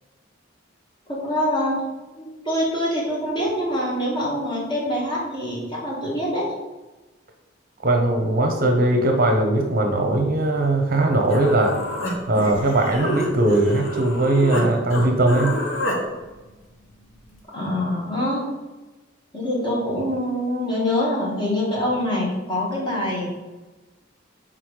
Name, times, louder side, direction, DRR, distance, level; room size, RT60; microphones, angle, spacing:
voice 1, 1.1-1.8 2.1-6.5 17.5-18.4 19.3-23.3, left 1 dB, 25° left, -5 dB, 1.7 m, -25 dB
voice 2, 7.8-11.8 12.3-15.5, right 2 dB, 45° right, 3 dB, 0.7 m, -20 dB
Human voice, 11.3-14.7 14.9-16.0, equal, 85° left, 1.4 m, -28 dB
6.0 x 3.8 x 4.9 m, 1.1 s
head